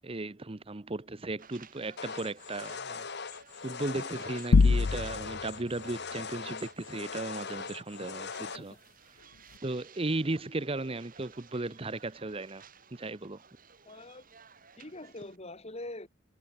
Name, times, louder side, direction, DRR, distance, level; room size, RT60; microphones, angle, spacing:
voice 1, 0.0-3.1 3.6-8.8 9.6-12.6 12.9-13.4, right 2 dB, 30° right, 0.9 m, -36 dB
sound 1, 1.4-15.4, right 6 dB, 45° right, 6.0 m, -57 dB
sound 2, 2.0-8.6, left 5 dB, 55° left, 1.7 m, -41 dB
sound 3, 4.5-5.5, left 4 dB, 85° left, 0.6 m, -22 dB
voice 2, 8.4-8.8 13.9-14.2 14.8-16.1, left 2 dB, 30° left, 2.5 m, -44 dB
head